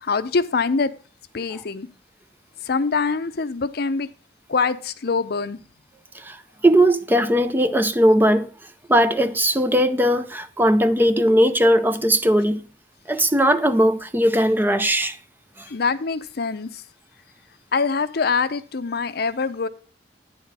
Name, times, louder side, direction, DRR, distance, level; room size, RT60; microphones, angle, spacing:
voice 1, 0.0-0.9 1.3-1.9 2.6-4.1 4.5-5.6 15.7-16.8 17.7-19.7, left 4 dB, 60° left, 0.6 m, -24 dB
voice 2, 6.1-8.5 8.9-12.6 13.1-15.2 15.6-15.7, equal, 10° right, 0.5 m, -19 dB
9.6 x 5.0 x 5.9 m
head